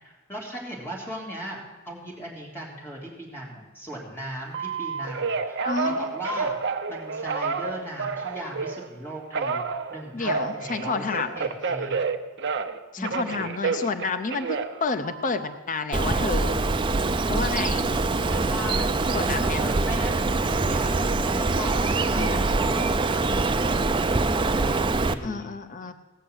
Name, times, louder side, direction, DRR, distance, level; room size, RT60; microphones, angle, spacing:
voice 1, 0.0-6.5 6.9-11.1 11.4-12.0 13.0-13.3 18.3-20.9 21.2-24.0 24.4-25.5 25.8-25.9, right 1 dB, 10° left, -3 dB, 3.3 m, -37 dB
Telephone, 4.5-8.9 9.3-12.8 13.0-15.5 16.0-16.6, right 4 dB, 55° right, 0.8 m, -30 dB
voice 2, 5.6-6.1 10.1-11.3 12.9-16.6 17.2-17.9 19.1-19.6 22.1-22.9 25.2-25.9, left 4 dB, 35° left, 9 dB, 0.6 m, -30 dB
Bird, 15.9-25.1, right 3 dB, 20° right, 0.5 m, -24 dB
18.0 x 6.6 x 8.0 m, 1.2 s
head